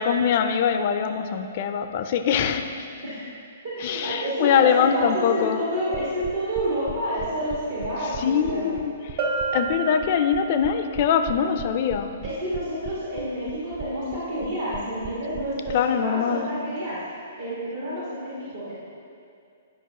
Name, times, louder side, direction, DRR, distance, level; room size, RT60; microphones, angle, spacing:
voice 1, 0.0-2.8 3.8-5.6 8.2-9.2 9.5-12.1 15.7-16.5, left 7 dB, 45° left, 8 dB, 0.4 m, -23 dB
voice 2, 3.6-8.7 12.2-17.1 17.4-18.7, equal, 75° right, -8 dB, 1.5 m, -29 dB
sound 1, 5.9-15.7, right 7 dB, 30° right, 0.4 m, -38 dB
Bell, 9.2-10.8, right 4 dB, 50° right, 1.2 m, -29 dB
9.5 x 5.1 x 2.8 m, 2.4 s
figure-of-eight pair, 120°, 0 cm